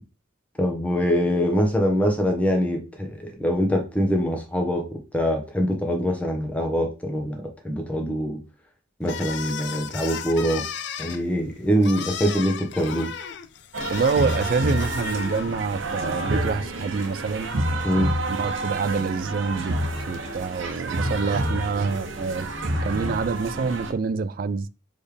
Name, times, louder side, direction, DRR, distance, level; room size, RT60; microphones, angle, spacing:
voice 1, 0.6-8.4 9.0-10.6 11.0-13.1 17.8-18.1, equal, 5° left, 1.0 m, -24 dB
sound 1, 9.0-15.7, left 7 dB, 65° left, 0.4 m, -35 dB
sound 2, 13.7-23.9, right 1 dB, 85° right, 0.9 m, -28 dB
voice 2, 13.9-17.5 18.3-19.8 20.1-24.7, right 4 dB, 45° right, 0.3 m, -26 dB
4.3 x 3.5 x 3.3 m
head